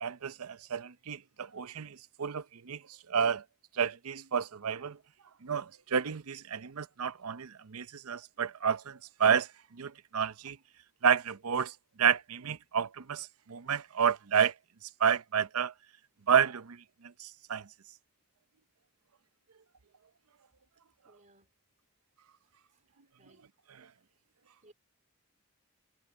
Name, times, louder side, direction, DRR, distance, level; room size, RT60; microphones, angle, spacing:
voice 1, 0.0-2.8 3.1-3.4 3.7-5.0 5.4-10.6 11.0-14.5 15.0-15.7 16.3-17.7 23.8-23.9, right 7 dB, 85° right, 0.7 m, -30 dB
voice 2, 21.0-21.5 22.4-22.9 23.2-23.4 24.6-24.7, right 1 dB, 35° right, 4.2 m, -63 dB
head